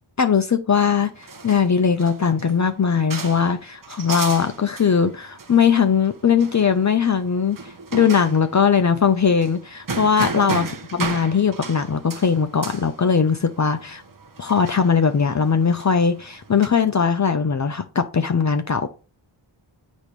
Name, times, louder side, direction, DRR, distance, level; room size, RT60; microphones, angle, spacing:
voice 1, 0.2-14.0 14.4-18.9, left 6 dB, 35° left, 0.7 m, -20 dB
sound 1, 0.7-16.7, right 4 dB, 45° right, 1.0 m, -35 dB
8.2 x 3.1 x 5.2 m
cardioid pair, 65°, 47 cm